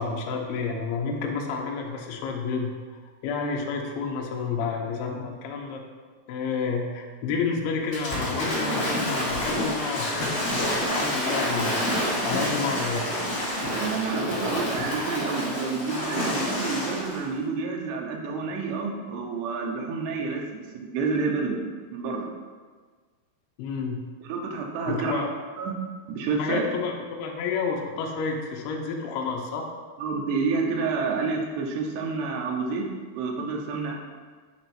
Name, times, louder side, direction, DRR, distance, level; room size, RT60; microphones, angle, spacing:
voice 1, 0.0-2.7 3.2-5.8 6.3-11.9 12.2-13.2 23.6-24.0 24.9-25.3 26.4-29.7, left 5 dB, 85° left, 0 dB, 2.5 m, -30 dB
Waves surf / Splash splatter, 7.9-17.2, equal, 35° left, 1.2 m, -28 dB
voice 2, 13.7-21.6 21.9-22.3 24.2-25.2 25.6-25.7 26.1-26.6 30.0-32.9 33.2-33.9, right 4 dB, 90° right, 1 dB, 2.9 m, -29 dB
9.0 x 3.4 x 4.4 m, 1.5 s
omnidirectional pair, 4.8 m